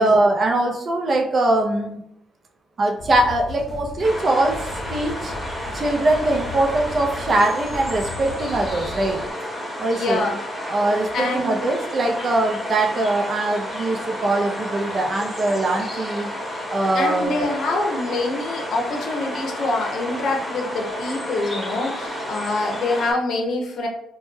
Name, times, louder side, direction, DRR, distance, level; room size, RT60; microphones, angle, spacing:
voice 1, 0.0-2.0 2.8-5.3 5.7-9.2 9.8-10.3 10.7-16.3 16.7-17.5, right 2 dB, 45° right, 1 dB, 0.5 m, -22 dB
sound 1, 3.0-9.3, left 2 dB, 30° left, 0.9 m, -36 dB
sound 2, 4.0-23.1, equal, 5° left, 1.0 m, -31 dB
voice 2, 9.9-10.4 11.1-11.7 16.9-23.9, left 2 dB, 65° left, 2 dB, 0.6 m, -25 dB
2.2 x 2.1 x 3.1 m, 0.75 s
cardioid pair, 90°, 0 cm